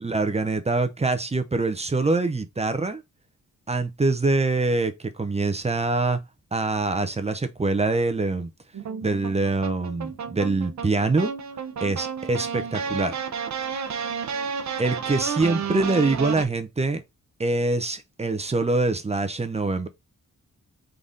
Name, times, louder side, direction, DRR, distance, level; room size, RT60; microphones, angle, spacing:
voice 1, 0.0-3.0 3.7-6.2 6.5-8.5 9.0-11.3 11.8-13.2 14.8-17.0 17.4-19.9, right 3 dB, 20° right, 0.5 m, -24 dB
sound 1, 8.7-16.5, right 6 dB, 55° right, 0.7 m, -31 dB
3.9 x 3.5 x 3.6 m
wide cardioid pair, 150°, 33 cm